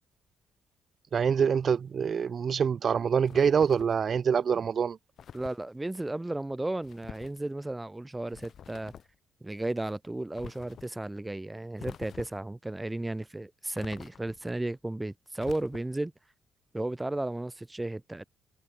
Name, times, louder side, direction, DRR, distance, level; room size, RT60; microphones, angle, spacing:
voice 1, 1.1-5.0, right 7 dB, 50° right, 0.4 m, -25 dB
sound 1, 3.3-4.0 5.2-5.6 6.8-7.4 8.3-9.2 10.4-10.9 11.8-12.5 13.8-14.5 15.4-16.1, left 8 dB, 60° left, 3.9 m, -47 dB
voice 2, 5.3-8.9 9.4-16.1 16.7-18.2, right 2 dB, 10° right, 3.2 m, -34 dB
cardioid pair, 90°, 0 cm